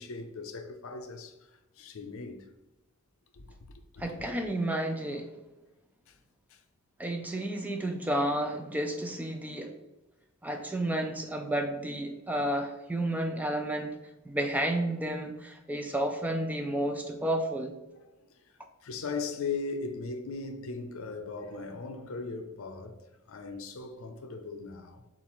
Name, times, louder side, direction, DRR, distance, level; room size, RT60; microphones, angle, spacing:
voice 1, 0.0-2.5 3.3-4.4 6.1-6.2 6.5-6.6 18.3-18.5 18.8-25.0, left 4 dB, 65° left, 0.5 m, -39 dB
voice 2, 4.0-5.3 7.0-9.7 10.4-14.0 14.3-17.7, right 1 dB, 5° right, 0.3 m, -31 dB
7.0 x 2.5 x 3.0 m
head